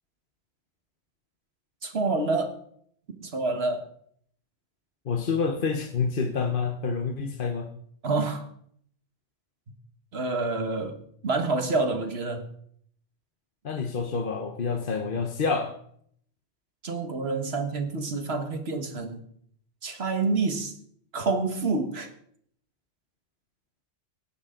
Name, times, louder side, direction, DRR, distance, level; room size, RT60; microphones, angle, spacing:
voice 1, 1.8-2.6 3.2-3.9 8.0-8.5 10.1-11.0 11.2-12.5 16.8-19.2 19.8-20.7 21.1-22.1, right 3 dB, 60° right, 7 dB, 1.8 m, -27 dB
voice 2, 5.0-7.7 13.6-15.8, left 5 dB, 50° left, 5 dB, 1.1 m, -28 dB
17.5 x 11.0 x 3.8 m, 0.65 s
omnidirectional pair, 1.2 m